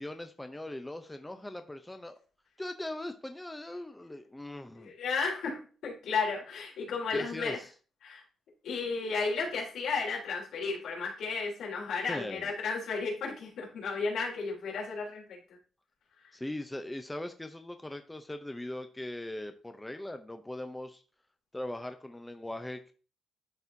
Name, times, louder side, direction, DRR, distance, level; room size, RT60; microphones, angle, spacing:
voice 1, 0.0-2.2 2.6-4.9 7.1-7.7 12.1-12.5 16.3-21.0 21.5-22.9, left 1 dB, 10° left, 7 dB, 0.6 m, -40 dB
voice 2, 4.8-7.6 8.0-8.2 8.6-15.4, left 4 dB, 80° left, -2 dB, 3.2 m, -33 dB
11.5 x 4.1 x 2.7 m, 0.38 s
cardioid pair, 130°, 0 cm